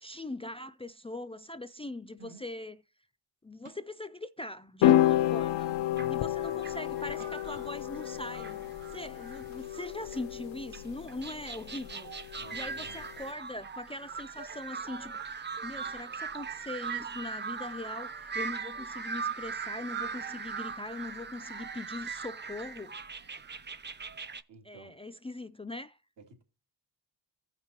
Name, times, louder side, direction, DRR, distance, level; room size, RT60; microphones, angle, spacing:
voice 1, 0.0-2.8 3.4-5.7 6.1-12.1 12.5-23.0 24.6-26.0, left 2 dB, 15° left, 0.4 m, -41 dB
voice 2, 2.2-2.5 5.9-6.8 12.4-13.0 24.5-25.0 26.2-26.4, right 2 dB, 75° right, 2.7 m, -52 dB
sound 1, 2.3-2.6 3.6-4.0 4.9-5.4 7.2-7.7 9.0-9.1, right 4 dB, 45° right, 1.7 m, -56 dB
sound 2, 4.8-13.2, left 13 dB, 80° left, 0.6 m, -30 dB
sound 3, 5.1-5.2 5.4-10.3 10.7-24.4, right 5 dB, 25° right, 0.7 m, -40 dB
15.5 x 5.7 x 2.9 m
cardioid pair, 90°, 43 cm